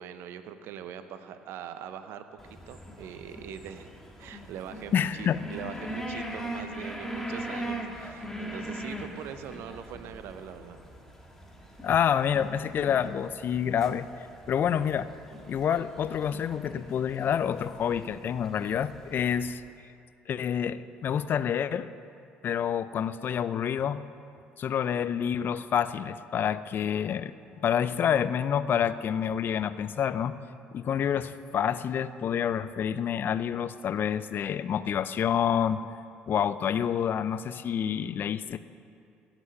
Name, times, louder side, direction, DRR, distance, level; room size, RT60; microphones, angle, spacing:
voice 1, 0.0-2.2 2.7-3.9 4.2-10.8, right 8 dB, 65° right, 10 dB, 0.8 m, -42 dB
sound 1, 2.4-19.5, right 1 dB, 10° left, 1.9 m, -41 dB
voice 2, 4.9-5.4 11.8-14.1 14.5-15.1 15.5-19.6 20.3-21.9 22.4-24.0 24.6-30.4 30.7-35.8 36.3-38.6, left 8 dB, 50° left, 14 dB, 0.5 m, -28 dB
16.5 x 6.0 x 6.6 m, 2.5 s
hypercardioid pair, 60°, 4 cm